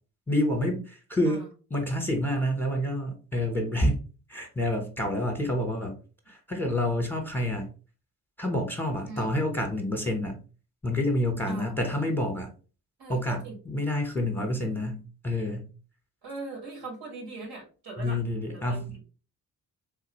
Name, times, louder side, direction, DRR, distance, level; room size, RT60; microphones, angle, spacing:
voice 1, 0.3-1.4 1.7-4.0 4.3-6.0 6.3-7.7 8.4-10.4 10.8-12.5 13.1-15.7 18.0-18.9, left 1 dB, 5° left, 3 dB, 1.1 m, -28 dB
voice 2, 13.0-13.6 16.2-18.2 18.5-19.0, right 3 dB, 65° right, 1 dB, 1.6 m, -40 dB
3.8 x 2.7 x 3.0 m, 0.36 s
hypercardioid pair, 40°, 46 cm